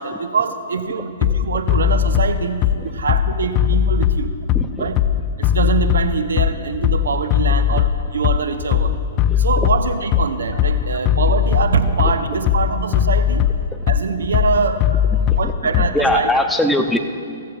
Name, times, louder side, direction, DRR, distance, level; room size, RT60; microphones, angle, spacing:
voice 1, 0.0-4.3 4.8-4.9 5.4-9.0 9.4-13.5 13.9-15.0 15.4-16.3, right 5 dB, 65° right, 9 dB, 0.8 m, -23 dB
Bass drum, 1.2-16.2, left 9 dB, 30° left, 0.4 m, -19 dB
voice 2, 4.5-4.9 7.7-7.8 9.3-9.5 12.0-12.1 15.3-17.0, left 1 dB, 5° left, 5 dB, 0.7 m, -22 dB
16.0 x 14.0 x 2.5 m, 2.3 s
figure-of-eight pair, 120°, 0 cm